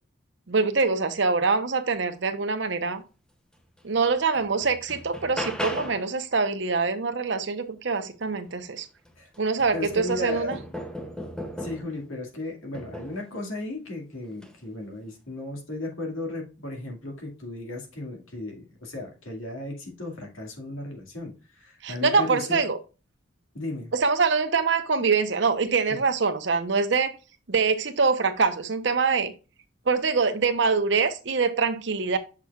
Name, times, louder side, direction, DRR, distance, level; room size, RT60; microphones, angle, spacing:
voice 1, 0.5-3.0 3.8-8.9 9.4-10.6 21.8-22.8 23.9-27.1 27.5-29.3 29.9-32.2, right 4 dB, 60° right, 0.8 m, -24 dB
sound 1, 3.8-3.9 4.3-6.2 8.5-8.6 9.1-12.0 12.7-13.3 14.3-14.6, equal, 5° left, 0.6 m, -36 dB
voice 2, 9.7-10.6 11.6-22.6 23.5-23.9 25.9-26.0, left 2 dB, 90° left, 2.0 m, -35 dB
6.8 x 6.0 x 2.3 m
head